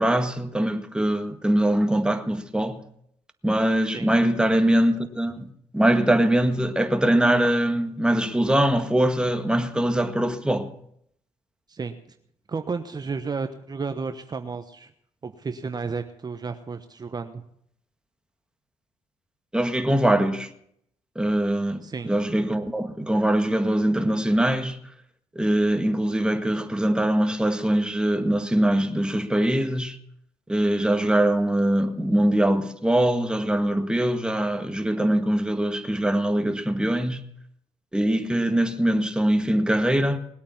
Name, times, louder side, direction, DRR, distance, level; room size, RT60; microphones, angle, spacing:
voice 1, 0.0-2.8 3.4-10.7 19.5-20.5 21.1-24.8 25.3-30.0 30.5-37.2 37.9-40.2, right 1 dB, 5° right, 1.7 m, -22 dB
voice 2, 12.5-14.9 15.2-17.4 21.8-22.1, right 4 dB, 35° right, 1.1 m, -32 dB
20.0 x 8.6 x 7.2 m
supercardioid pair, 65°, 11 cm